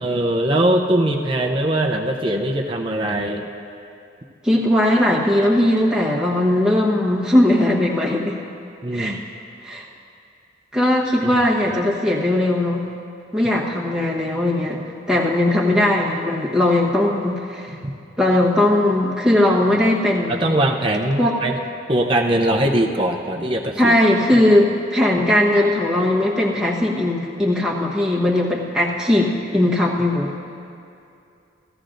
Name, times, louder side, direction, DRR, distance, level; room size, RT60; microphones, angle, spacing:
voice 1, 0.0-3.5 8.8-9.2 11.2-11.4 17.7-17.8 20.3-21.6 21.9-23.9 24.3-24.4, right 1 dB, 25° right, 1 dB, 0.6 m, -21 dB
voice 2, 4.4-8.4 8.9-9.2 9.6-9.8 10.7-12.9 13.3-14.8 15.1-17.7 18.2-20.5 21.2-21.4 23.8-30.4, left 1 dB, 5° right, -4 dB, 1.1 m, -19 dB
15.5 x 14.5 x 2.6 m, 2.6 s
head